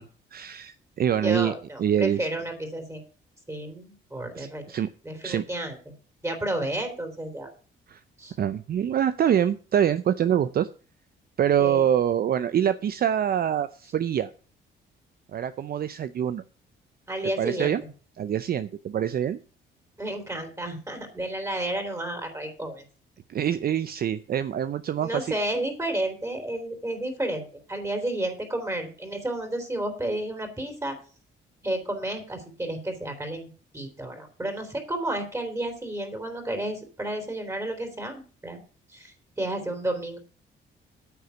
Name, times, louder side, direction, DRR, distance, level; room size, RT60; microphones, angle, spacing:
voice 1, 0.3-1.5 1.8-2.2 4.4-4.9 5.2-5.4 7.9-8.0 8.4-10.7 11.4-14.3 15.3-16.4 17.4-17.8 18.2-19.4 23.3-25.3, right 9 dB, 50° right, 12 dB, 0.5 m, -25 dB
voice 2, 1.2-3.0 3.5-4.6 5.0-5.8 6.2-7.5 8.2-8.4 11.6-11.8 17.1-17.9 20.0-22.8 25.0-30.9 31.6-38.6 38.9-40.2, right 1 dB, 15° right, 5 dB, 3.2 m, -31 dB
9.4 x 6.5 x 6.9 m, 0.39 s
cardioid pair, 90°, 20 cm